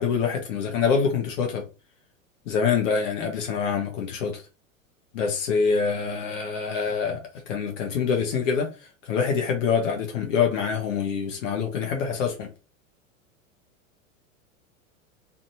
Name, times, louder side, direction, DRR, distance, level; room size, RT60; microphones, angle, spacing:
voice 1, 0.0-1.6 2.5-4.4 5.1-7.2 7.5-8.7 9.0-12.5, left 6 dB, 65° left, 0.9 m, -25 dB
2.6 x 2.6 x 2.7 m
hypercardioid pair, 95°, 41 cm